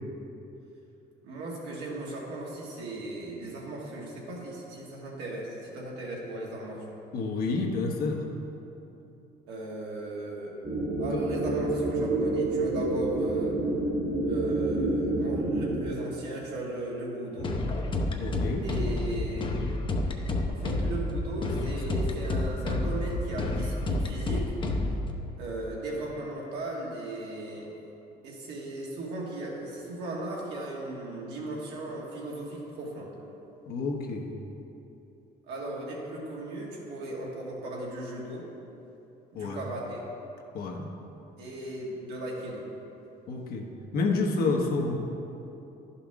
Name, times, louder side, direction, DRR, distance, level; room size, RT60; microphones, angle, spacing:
voice 1, 1.2-6.9 9.5-10.6 11.0-13.6 14.2-17.5 18.6-19.5 20.5-24.5 25.4-27.7 28.2-33.1 35.5-38.5 39.3-40.0 41.4-42.7, right 1 dB, 80° right, -4 dB, 1.9 m, -37 dB
voice 2, 7.1-8.3 11.1-11.2 18.2-18.7 33.7-34.3 39.3-39.6 40.5-41.0 43.3-43.7 43.9-45.0, left 3 dB, 65° left, 1 dB, 1.1 m, -29 dB
sound 1, 10.6-15.8, right 2 dB, 65° right, 1.7 m, -28 dB
sound 2, 17.4-25.1, left 2 dB, 30° left, 0.7 m, -29 dB
11.0 x 5.6 x 3.6 m, 2.9 s
cardioid pair, 110°, 17 cm